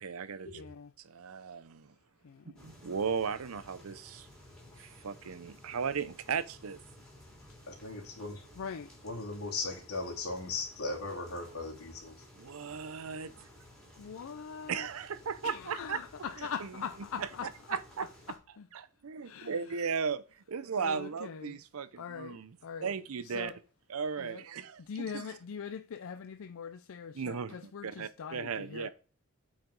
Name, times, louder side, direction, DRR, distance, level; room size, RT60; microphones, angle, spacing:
voice 1, 0.0-0.6 1.0-1.9 2.4-4.3 4.8-6.8 12.4-13.5 14.7-16.0 16.6-16.7 17.2-18.1 18.7-22.5 22.8-23.5 23.9-25.2 27.1-28.9, right 6 dB, 70° right, 0.6 m, -36 dB
voice 2, 0.5-0.9 2.2-2.7 8.6-8.9 14.0-14.9 15.4-17.8 18.3-18.7 19.2-19.9 20.8-21.6 22.0-22.9 23.2-23.6 24.2-24.4 24.8-28.9, left 6 dB, 65° left, 0.4 m, -42 dB
sound 1, 2.6-18.4, left 1 dB, 5° left, 3.1 m, -56 dB
voice 3, 7.7-8.5 9.0-12.2, left 3 dB, 90° left, 3.0 m, -38 dB
8.7 x 4.7 x 3.9 m
head